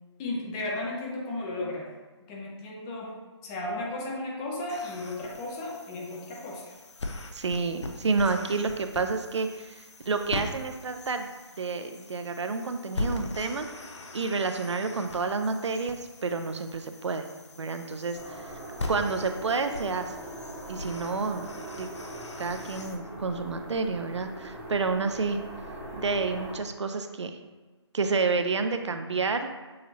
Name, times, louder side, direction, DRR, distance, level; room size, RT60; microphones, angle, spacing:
voice 1, 0.2-1.9 2.3-6.7, left 2 dB, 10° left, -2 dB, 0.4 m, -34 dB
sound 1, 4.7-23.0, left 2 dB, 75° left, 0.6 m, -41 dB
voice 2, 7.3-11.3 11.6-13.7 14.1-17.3 17.6-18.5 18.9-20.1 20.7-21.5 21.7-21.9 22.4-25.4 25.9-27.4 27.9-29.5, right 4 dB, 75° right, 7 dB, 0.4 m, -29 dB
sound 2, 18.1-26.5, right 1 dB, 10° right, 0.8 m, -41 dB
6.4 x 2.7 x 2.7 m, 1.3 s
figure-of-eight pair, 150°, 15 cm